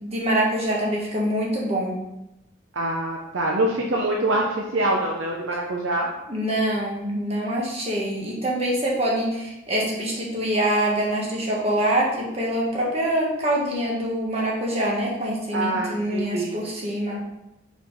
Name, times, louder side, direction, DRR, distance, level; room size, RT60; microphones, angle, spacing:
voice 1, 0.0-2.0 6.3-17.2, right 1 dB, 30° right, -3 dB, 1.4 m, -25 dB
voice 2, 2.7-6.1 15.5-16.6, right 1 dB, 75° right, -1 dB, 0.7 m, -25 dB
5.0 x 4.4 x 4.6 m, 0.93 s
head